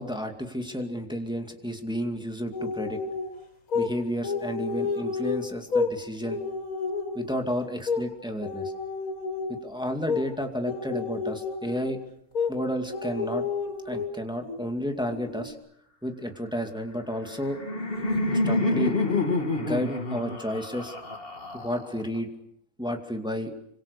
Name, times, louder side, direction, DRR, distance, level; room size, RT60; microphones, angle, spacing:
voice 1, 0.0-3.0 3.7-6.4 7.1-8.7 9.5-12.0 12.5-13.4 13.9-15.5 16.0-17.6 18.3-19.0 19.6-20.9 21.5-22.3 22.8-23.5, equal, 5° right, 4 dB, 2.3 m, -31 dB
sound 1, 2.5-3.3 3.7-3.9 4.2-5.9 6.2-7.3 7.9-8.1 8.4-9.7 10.1-10.3 10.6-12.0 12.3-12.6 12.9-14.1 14.4-14.6 15.0-15.5, left 4 dB, 70° left, 4.5 m, -30 dB
Laughter, 17.1-22.2, left 2 dB, 40° left, 2.4 m, -28 dB
27.0 x 25.0 x 6.9 m, 0.76 s
omnidirectional pair, 1.6 m